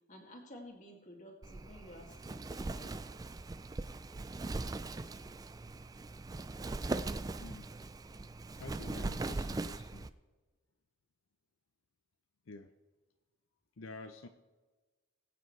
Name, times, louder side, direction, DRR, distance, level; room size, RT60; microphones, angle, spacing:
voice 1, 0.1-2.9 8.6-8.7, equal, 40° left, 1 dB, 2.3 m, -53 dB
Wind, 1.4-10.1, right 2 dB, 20° right, 0.3 m, -40 dB
voice 2, 8.5-10.1 12.5-12.7 13.8-14.3, left 3 dB, 80° left, 7 dB, 0.6 m, -49 dB
21.5 x 8.4 x 3.3 m, 1.3 s
head